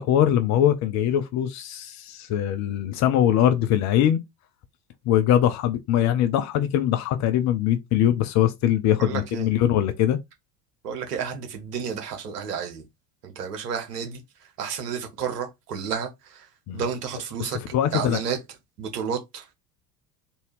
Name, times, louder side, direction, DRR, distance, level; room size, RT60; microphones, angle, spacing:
voice 1, 0.0-4.2 5.1-10.2 16.7-16.8 17.4-18.2, left 11 dB, 35° left, 0.5 m, -22 dB
voice 2, 9.0-9.5 10.8-12.8 13.2-14.2 14.6-16.5 16.7-17.6 17.9-18.4 18.8-19.4, right 7 dB, 70° right, 1.2 m, -31 dB
3.5 x 2.8 x 3.1 m
figure-of-eight pair, 70°, 50 cm